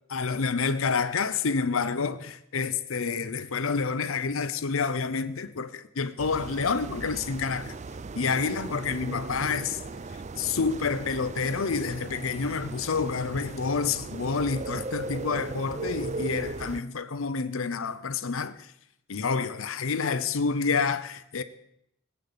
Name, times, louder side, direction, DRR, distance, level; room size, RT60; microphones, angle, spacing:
voice 1, 0.1-7.8 8.2-9.8 10.1-18.7 19.1-21.4, left 5 dB, 70° left, 0.7 m, -28 dB
sound 1, 6.2-16.8, right 3 dB, 35° right, 0.4 m, -38 dB
18.5 x 8.3 x 6.7 m
head